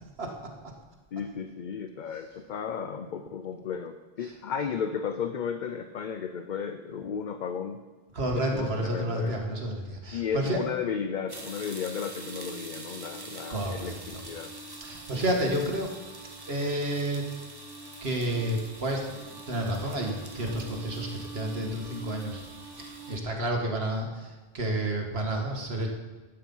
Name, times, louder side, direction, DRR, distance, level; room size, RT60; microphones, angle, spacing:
voice 1, 1.1-7.8 8.5-9.3 10.1-14.5, left 7 dB, 55° left, 8 dB, 0.7 m, -34 dB
voice 2, 8.1-10.6 13.5-14.2 14.8-15.9 16.5-17.3 18.0-22.4 22.8-25.9, right 1 dB, 75° right, 1 dB, 2.0 m, -30 dB
sound 1, 11.3-23.2, right 3 dB, 25° right, 1.1 m, -43 dB
11.5 x 8.7 x 5.5 m, 1.3 s
omnidirectional pair, 1.0 m